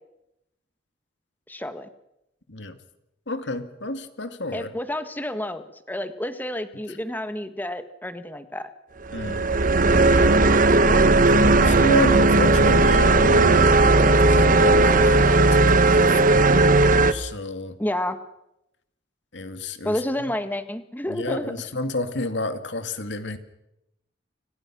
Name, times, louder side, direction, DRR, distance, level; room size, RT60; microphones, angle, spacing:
voice 1, 1.5-1.9 4.5-8.7 17.8-18.2 19.8-21.5, left 1 dB, 10° left, 10 dB, 1.6 m, -30 dB
voice 2, 3.3-4.7 6.9-7.0 9.1-9.5 9.9-10.3 11.2-16.5 17.1-17.8 19.3-20.0 21.1-23.4, left 2 dB, 70° left, 9 dB, 2.3 m, -30 dB
sound 1, 9.1-17.1, right 2 dB, 50° right, 1.2 m, -16 dB
30.0 x 25.5 x 6.2 m, 0.87 s
head